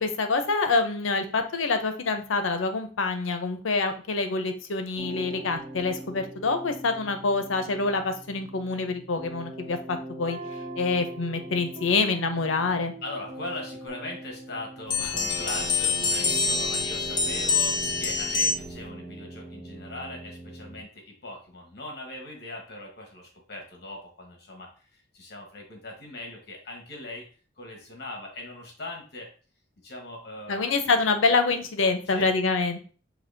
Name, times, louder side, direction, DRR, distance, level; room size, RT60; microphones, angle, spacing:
voice 1, 0.0-10.4 10.8-12.9 30.5-32.8, left 3 dB, 90° left, 7 dB, 0.6 m, -26 dB
sound 1, 5.0-20.8, right 1 dB, 25° right, 1.0 m, -41 dB
voice 2, 13.0-27.2 27.6-29.3 29.8-30.6 32.1-32.3, left 2 dB, 55° left, 0 dB, 1.2 m, -40 dB
sound 2, 14.9-18.8, left 4 dB, 25° left, 0.5 m, -26 dB
6.0 x 2.7 x 2.6 m, 0.39 s
head